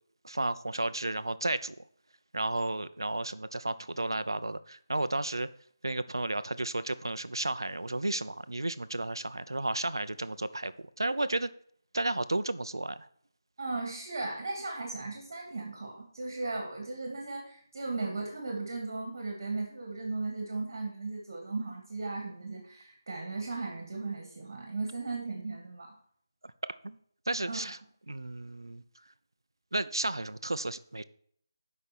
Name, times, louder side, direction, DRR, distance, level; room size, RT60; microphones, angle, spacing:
voice 1, 0.2-1.8 2.3-5.5 5.8-11.5 11.9-13.1 26.8-27.0 27.3-27.8 28.1-28.8 29.7-31.0, right 2 dB, 90° right, 14 dB, 0.6 m, -33 dB
voice 2, 13.6-25.9 27.5-27.7, right 3 dB, 45° right, 0 dB, 2.3 m, -36 dB
7.4 x 5.5 x 6.1 m, 0.63 s
figure-of-eight pair, 165°, 2 cm